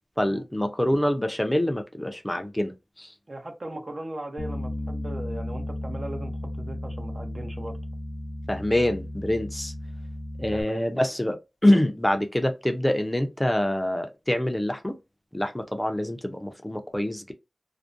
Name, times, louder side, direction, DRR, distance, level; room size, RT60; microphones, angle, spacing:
voice 1, 0.2-3.1 8.5-9.7 10.4-11.4 11.6-15.0 15.3-17.3, left 1 dB, 15° left, 0.5 m, -25 dB
voice 2, 3.3-7.8 10.5-10.8, right 1 dB, 55° right, 0.6 m, -38 dB
Bass guitar, 4.4-10.6, left 1 dB, 85° left, 0.4 m, -34 dB
2.5 x 2.1 x 2.5 m
wide cardioid pair, 60°, 0 cm